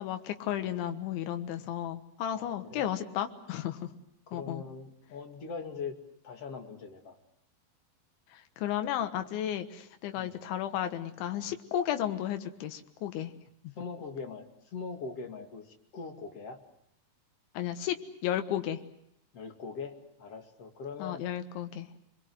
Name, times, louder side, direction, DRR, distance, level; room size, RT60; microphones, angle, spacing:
voice 1, 0.0-3.9 4.3-4.6 8.3-13.3 13.6-13.7 17.6-18.8 21.0-21.9, left 11 dB, 85° left, 8 dB, 3.8 m, -33 dB
voice 2, 2.3-2.8 4.3-5.9 6.2-7.2 10.2-10.4 13.8-14.4 14.7-16.6 19.3-21.2, left 5 dB, 40° left, 4 dB, 2.8 m, -41 dB
29.5 x 22.0 x 7.9 m, 0.76 s
omnidirectional pair, 5.2 m